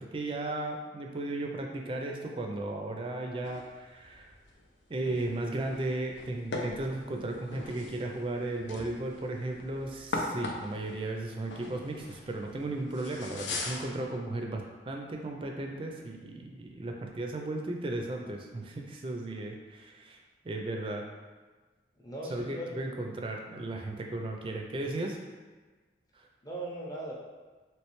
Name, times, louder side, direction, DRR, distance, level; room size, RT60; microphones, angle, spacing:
voice 1, 0.0-4.3 4.9-20.2 20.4-21.0 22.3-25.2 26.2-26.3, right 2 dB, 30° right, 2 dB, 0.4 m, -35 dB
sound 1, 3.4-14.2, left 2 dB, 85° left, 0.5 m, -41 dB
voice 2, 22.0-22.8 26.4-27.1, right 1 dB, 20° left, -4 dB, 0.6 m, -38 dB
3.2 x 3.1 x 3.0 m, 1.3 s
head